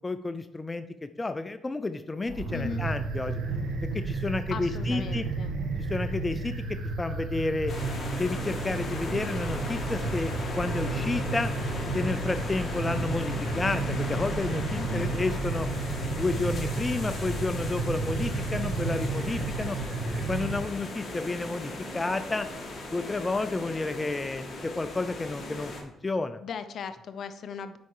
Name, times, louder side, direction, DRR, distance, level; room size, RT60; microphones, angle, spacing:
voice 1, 0.0-3.4 3.9-5.3 5.9-7.7 8.2-11.5 11.9-15.7 16.2-19.8 20.3-22.5 22.9-26.4, left 3 dB, 20° left, 10 dB, 0.4 m, -31 dB
sound 1, 2.2-20.6, right 3 dB, 85° right, 1.6 m, -32 dB
voice 2, 2.5-2.9 4.5-5.5 14.8-15.2 26.4-27.8, left 6 dB, 60° left, 11 dB, 0.6 m, -38 dB
sound 2, 7.7-25.8, left 2 dB, 40° left, 2.0 m, -37 dB
8.2 x 5.6 x 4.8 m, 0.80 s
cardioid pair, 90°, 0 cm